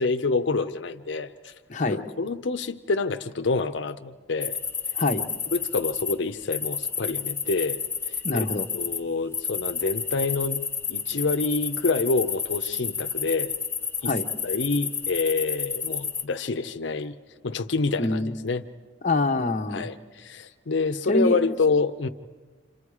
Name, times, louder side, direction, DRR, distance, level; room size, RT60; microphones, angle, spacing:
voice 1, 0.0-1.5 1.9-4.6 5.5-7.8 8.1-8.5 8.7-13.5 14.0-14.1 14.4-17.1 17.4-18.6 19.7-22.1, left 3 dB, 90° left, 0.7 m, -27 dB
voice 2, 1.7-2.0 4.9-5.3 8.2-8.7 14.0-14.3 18.0-18.3 19.0-19.9 21.1-21.4, left 2 dB, 45° left, 0.9 m, -25 dB
sound 1, 4.4-6.1 6.5-9.0 9.3-16.2, left 6 dB, 15° left, 1.1 m, -30 dB
29.0 x 26.5 x 4.8 m
head